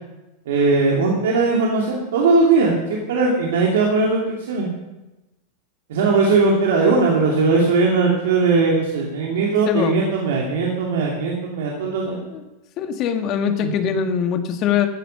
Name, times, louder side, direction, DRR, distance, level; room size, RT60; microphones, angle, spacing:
voice 1, 0.5-4.7 5.9-12.2 13.6-13.7, right 3 dB, 70° right, -2 dB, 2.7 m, -19 dB
voice 2, 9.7-10.0 12.2-12.4 12.8-14.9, left 8 dB, 45° left, 6 dB, 1.8 m, -22 dB
15.5 x 10.0 x 5.8 m, 1.0 s
hypercardioid pair, 100°, 0 cm